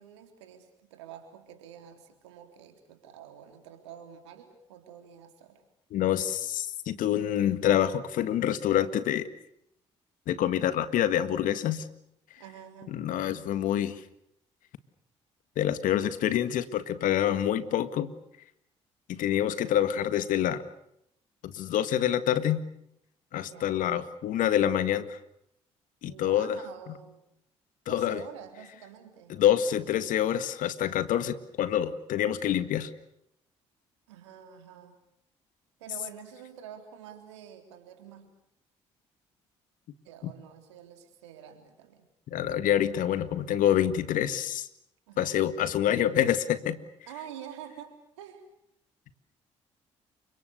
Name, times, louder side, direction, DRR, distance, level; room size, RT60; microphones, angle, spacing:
voice 1, 0.0-5.6 12.4-13.0 23.5-23.9 26.0-27.2 27.9-29.3 34.1-35.0 35.8-38.3 40.0-42.1 45.1-45.4 47.1-48.4, right 9 dB, 85° right, 6 dB, 3.7 m, -47 dB
voice 2, 5.9-9.3 10.3-11.8 12.9-14.0 15.6-18.1 19.1-20.6 21.4-22.6 23.3-25.2 26.0-26.6 27.9-28.2 29.3-32.9 40.2-40.3 42.3-44.7 45.2-46.8, left 10 dB, 65° left, 13 dB, 1.8 m, -26 dB
29.5 x 25.5 x 6.7 m, 0.76 s
hypercardioid pair, 50°, 15 cm